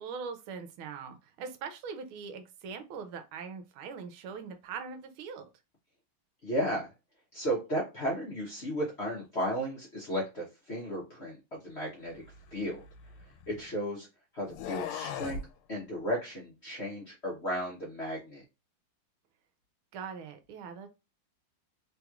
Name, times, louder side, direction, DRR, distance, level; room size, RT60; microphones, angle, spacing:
voice 1, 0.0-5.5 19.9-20.9, right 6 dB, 80° right, 7 dB, 1.4 m, -41 dB
voice 2, 6.4-6.9 7.3-12.2 12.5-12.8 13.5-14.1 14.3-15.4 15.7-18.4, equal, 50° left, -4 dB, 0.7 m, -34 dB
sound 1, 12.2-13.7 14.4-15.5, left 7 dB, 90° left, 1.5 m, -39 dB
3.5 x 3.0 x 2.3 m, 0.26 s
omnidirectional pair, 2.3 m